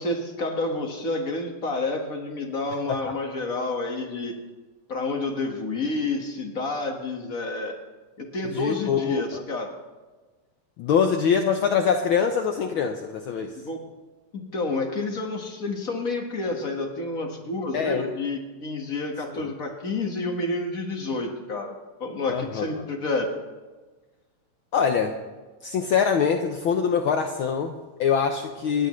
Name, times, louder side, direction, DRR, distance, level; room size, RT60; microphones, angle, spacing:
voice 1, 0.0-4.3 4.9-7.7 8.2-9.7 13.6-13.8 14.3-21.7 22.0-23.3, left 2 dB, 35° left, 2 dB, 1.6 m, -29 dB
voice 2, 8.5-9.4 10.8-13.6 17.7-18.1 19.3-19.5 22.3-22.8 24.7-25.2 25.6-28.9, left 7 dB, 80° left, 5 dB, 1.1 m, -24 dB
28.0 x 11.5 x 3.2 m, 1.3 s
omnidirectional pair, 3.3 m